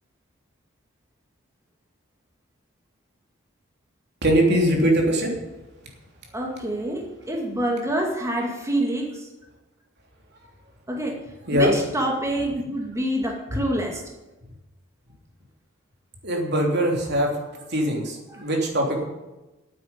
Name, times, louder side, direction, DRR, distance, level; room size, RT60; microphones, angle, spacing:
voice 1, 4.2-5.3 11.5-11.7 16.2-17.3 17.7-19.0, equal, 55° right, 1 dB, 3.1 m, -21 dB
voice 2, 6.3-9.2 10.9-11.2 11.5-14.0 18.3-18.4, right 1 dB, 15° right, 1 dB, 2.2 m, -26 dB
9.2 x 9.0 x 9.7 m, 1.1 s
head